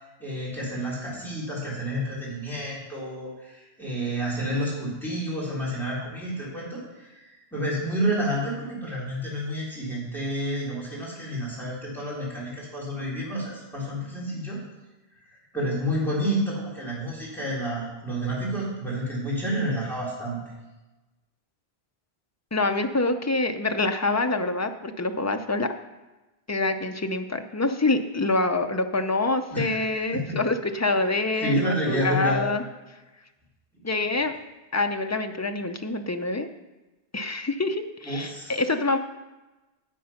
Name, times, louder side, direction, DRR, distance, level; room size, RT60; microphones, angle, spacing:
voice 1, 0.2-7.1 7.5-14.6 15.5-20.4 29.5-29.8 30.1-30.4 31.4-32.4 38.0-38.6, equal, ahead, -7 dB, 3.7 m, -29 dB
voice 2, 22.5-25.7 26.5-32.6 33.8-34.4 34.7-36.5 37.1-39.0, left 2 dB, 25° left, 6 dB, 0.3 m, -26 dB
9.9 x 7.6 x 5.7 m, 1.1 s
omnidirectional pair, 1.1 m